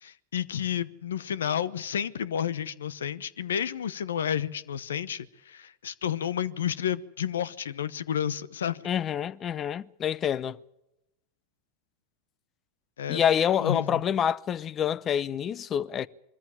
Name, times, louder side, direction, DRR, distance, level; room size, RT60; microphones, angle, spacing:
voice 1, 0.0-8.9 13.0-13.2 13.6-14.0, left 9 dB, 85° left, 0.9 m, -31 dB
voice 2, 8.8-10.6 13.1-16.1, left 9 dB, 35° left, 0.8 m, -27 dB
22.5 x 14.0 x 8.5 m
hypercardioid pair, 100°, 0 cm